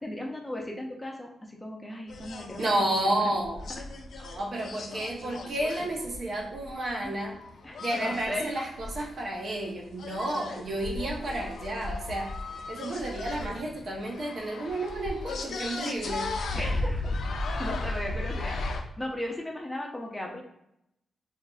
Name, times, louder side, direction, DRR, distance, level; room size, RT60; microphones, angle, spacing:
voice 1, 0.0-3.4 3.8-3.9 7.0-7.1 7.6-8.5 11.2-11.5 16.5-17.2 17.6-18.6 19.0-20.4, left 1 dB, 10° left, 0 dB, 0.5 m, -36 dB
sound 1, 2.1-18.8, left 2 dB, 70° left, 0.5 m, -36 dB
voice 2, 2.6-3.6 4.2-7.4 7.8-12.3 12.7-16.2, right 1 dB, 50° right, 0 dB, 0.8 m, -31 dB
4.6 x 2.4 x 2.3 m, 0.79 s
wide cardioid pair, 130°, 0 cm